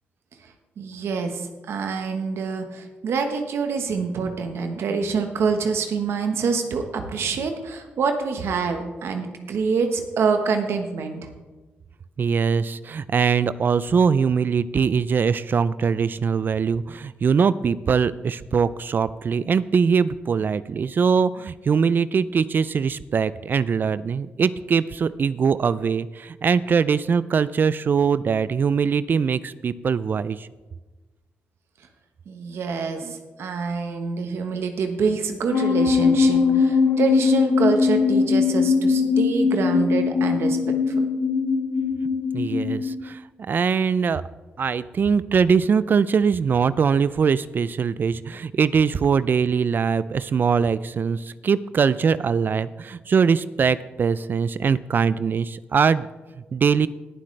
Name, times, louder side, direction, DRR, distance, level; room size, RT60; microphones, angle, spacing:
voice 1, 0.8-11.3 32.3-41.0, right 5 dB, 80° right, 6 dB, 1.1 m, -26 dB
voice 2, 12.2-30.5 42.3-44.2 44.6-56.1 56.5-56.9, right 6 dB, 50° right, 17 dB, 0.3 m, -22 dB
sound 1, 35.5-42.9, left 5 dB, 85° left, 1.7 m, -20 dB
17.5 x 7.6 x 3.3 m, 1.2 s
cardioid pair, 75°, 4 cm